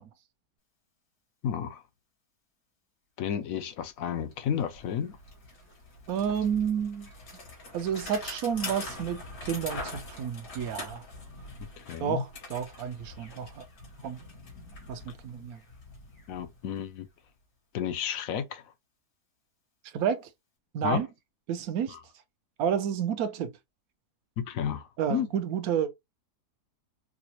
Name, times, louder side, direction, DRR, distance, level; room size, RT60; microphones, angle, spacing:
voice 1, 1.4-1.8 3.2-5.2 11.8-12.2 16.3-17.1 17.7-18.7 20.8-21.0 21.9-22.0 24.4-25.3, left 8 dB, 65° left, 0.9 m, -32 dB
Bicycle, 3.8-3.9 4.2-17.1, left 2 dB, 85° left, 2.5 m, -44 dB
voice 2, 6.1-7.1 7.7-11.0 12.0-13.6 14.0-14.2 14.9-15.6 19.9-20.3 20.7-21.1 21.5-22.0 22.6-23.6 25.0-25.9, right 8 dB, 70° right, 1.0 m, -30 dB
4.8 x 2.1 x 2.8 m
omnidirectional pair, 1.7 m